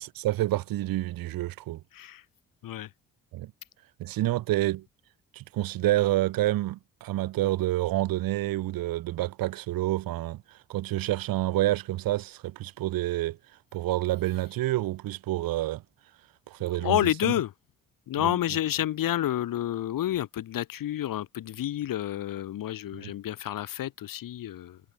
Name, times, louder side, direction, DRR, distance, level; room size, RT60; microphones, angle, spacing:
voice 1, 0.0-1.8 3.3-3.5 4.0-4.8 5.3-13.4 13.7-15.8 16.5-17.3 18.2-18.3 23.0-23.1, right 16 dB, 75° right, 2.7 m, -28 dB
voice 2, 1.9-2.2 2.6-2.9 16.7-17.5 18.1-24.8, left 12 dB, 70° left, 3.5 m, -29 dB
hypercardioid pair, 55°, 35 cm